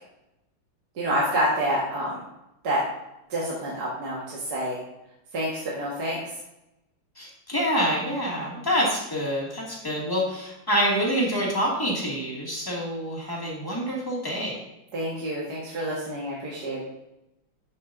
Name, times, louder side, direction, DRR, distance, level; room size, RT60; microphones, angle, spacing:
voice 1, 1.0-2.2 2.6-2.8 3.3-4.8 5.3-6.2 14.9-16.8, equal, 55° right, -5 dB, 2.0 m, -28 dB
voice 2, 7.2-14.6, equal, 10° left, -4 dB, 2.0 m, -26 dB
10.5 x 7.3 x 2.5 m, 0.89 s
omnidirectional pair, 2.2 m